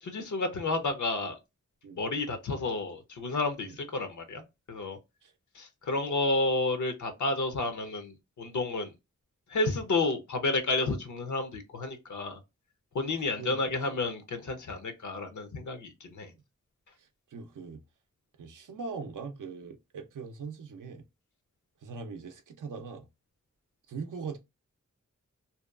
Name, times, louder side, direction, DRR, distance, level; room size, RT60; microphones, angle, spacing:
voice 1, 0.0-1.4 2.0-4.4 4.7-5.0 5.5-8.9 9.5-12.4 12.9-16.3, left 3 dB, 75° left, 0.6 m, -31 dB
voice 2, 13.1-14.0 17.0-17.8 18.4-21.0 21.8-23.1 23.9-24.4, right 5 dB, 85° right, 0.5 m, -41 dB
2.7 x 2.2 x 2.3 m
wide cardioid pair, 75°, 30 cm